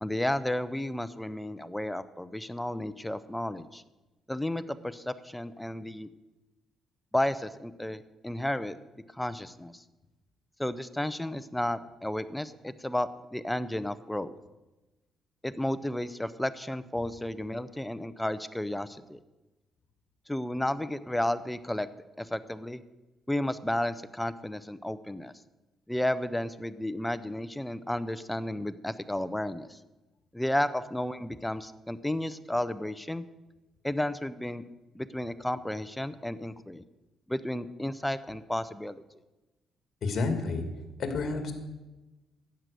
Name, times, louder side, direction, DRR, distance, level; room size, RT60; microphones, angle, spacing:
voice 1, 0.0-3.8 4.3-6.1 7.1-8.8 9.1-9.8 10.6-14.4 15.4-19.2 20.3-21.9 22.2-22.8 23.3-25.3 25.9-29.8 30.3-33.3 33.8-34.6 34.9-36.8 37.3-39.0, left 1 dB, 5° left, 14 dB, 0.6 m, -32 dB
voice 2, 40.0-40.6 41.0-41.5, left 3 dB, 55° left, 6 dB, 2.4 m, -29 dB
12.5 x 9.1 x 6.7 m, 1.1 s
cardioid pair, 90°, 0 cm